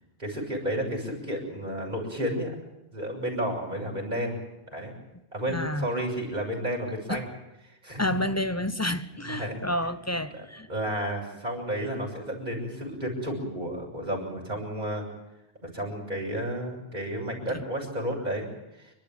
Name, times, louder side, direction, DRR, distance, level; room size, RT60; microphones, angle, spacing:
voice 1, 0.2-2.5 2.9-4.4 4.7-4.9 5.3-7.3 7.7-8.0 9.2-9.6 10.7-15.1 15.6-18.9, equal, 40° right, 6.9 m, -32 dB
voice 2, 5.5-5.9 7.1-7.2 8.0-10.7 17.5-17.6, left 1 dB, 15° left, 0.8 m, -29 dB
29.5 x 12.5 x 8.9 m
omnidirectional pair, 1.1 m